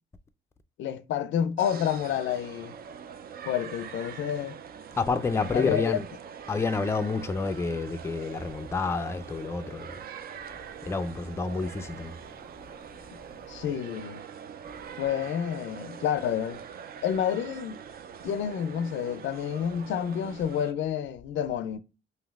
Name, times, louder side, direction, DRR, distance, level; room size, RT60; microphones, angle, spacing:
voice 1, 0.8-2.7 3.5-4.6 5.5-6.0 13.5-14.2 15.0-16.6 17.0-17.8 18.2-21.8, left 9 dB, 75° left, 0.4 m, -29 dB
sound 1, 1.6-20.7, right 8 dB, 50° right, 0.4 m, -43 dB
voice 2, 5.0-6.1 6.5-10.0 10.8-12.2, left 4 dB, 15° left, 0.4 m, -29 dB
5.1 x 2.8 x 2.3 m
cardioid pair, 90°, 20 cm